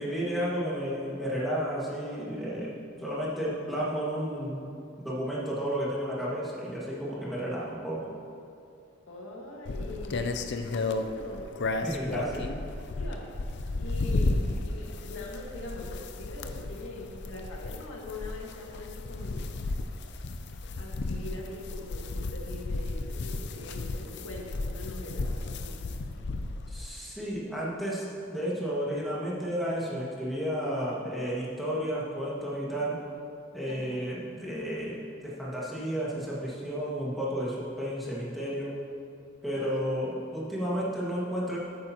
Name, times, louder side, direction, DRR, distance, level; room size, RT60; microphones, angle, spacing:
voice 1, 0.0-4.7 5.0-8.1 11.8-12.5 26.7-33.0 33.5-38.8 39.4-41.6, equal, ahead, -7 dB, 1.8 m, -32 dB
voice 2, 9.1-10.3 10.7-11.5 12.9-13.4 13.8-14.4 14.6-19.5 20.8-25.8 33.7-34.0 39.5-39.8, left 2 dB, 85° left, -2 dB, 1.7 m, -42 dB
sound 1, 9.6-26.9, left 2 dB, 60° left, 0.5 m, -33 dB
13.0 x 8.7 x 3.0 m, 2.5 s
head